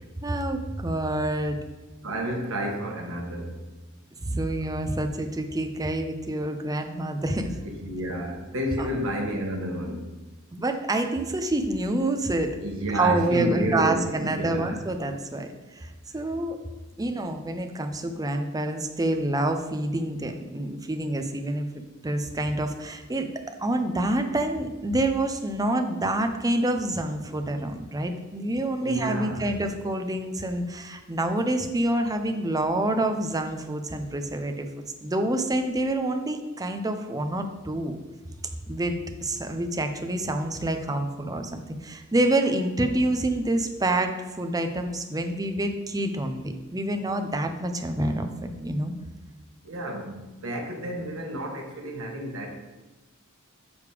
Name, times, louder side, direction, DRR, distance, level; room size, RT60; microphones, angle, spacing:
voice 1, 0.2-1.6 4.2-7.6 8.8-8.9 10.5-12.6 12.9-15.5 15.8-16.6 17.0-21.7 22.0-34.7 35.0-38.0 38.7-48.9, right 1 dB, 15° right, 6 dB, 0.6 m, -27 dB
voice 2, 2.0-3.6 7.6-10.0 12.6-14.8 28.8-29.4 49.6-52.5, right 1 dB, 65° right, 1 dB, 1.4 m, -30 dB
6.8 x 5.1 x 4.9 m, 1.2 s
head